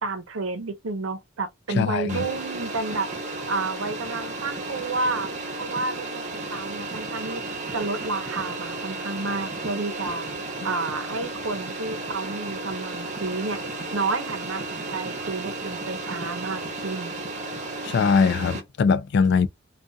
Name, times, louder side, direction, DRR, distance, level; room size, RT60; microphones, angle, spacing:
voice 1, 0.0-3.1 3.5-5.3 5.6-7.4 7.7-10.3 10.6-13.6 13.9-17.1, right 3 dB, 85° right, 0.7 m, -30 dB
voice 2, 1.7-2.2 17.8-19.5, left 5 dB, 60° left, 0.3 m, -21 dB
sound 1, 2.1-18.6, right 2 dB, 35° right, 0.7 m, -33 dB
2.6 x 2.3 x 2.2 m
head